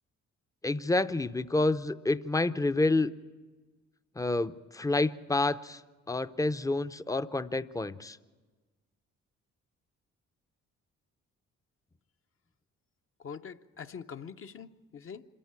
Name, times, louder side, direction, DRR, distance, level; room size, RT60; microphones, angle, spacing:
voice 1, 0.6-3.1 4.2-5.8 6.1-8.2, left 2 dB, 10° left, 12 dB, 0.6 m, -28 dB
voice 2, 13.2-15.2, left 6 dB, 45° left, 8 dB, 0.8 m, -44 dB
26.0 x 14.0 x 8.8 m, 1.3 s
cardioid pair, 90°, 30 cm